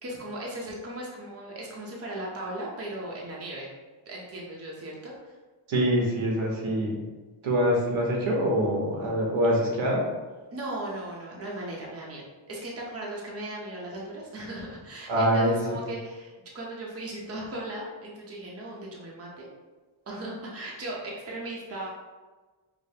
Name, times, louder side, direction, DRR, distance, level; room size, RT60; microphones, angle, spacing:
voice 1, 0.0-3.7 4.1-5.1 10.5-19.5 20.1-21.9, right 1 dB, 30° right, -3 dB, 0.6 m, -37 dB
voice 2, 5.7-7.0 7.4-10.0 15.1-15.6, equal, 75° right, -2 dB, 1.0 m, -24 dB
4.8 x 2.0 x 2.7 m, 1.3 s
wide cardioid pair, 130°, 48 cm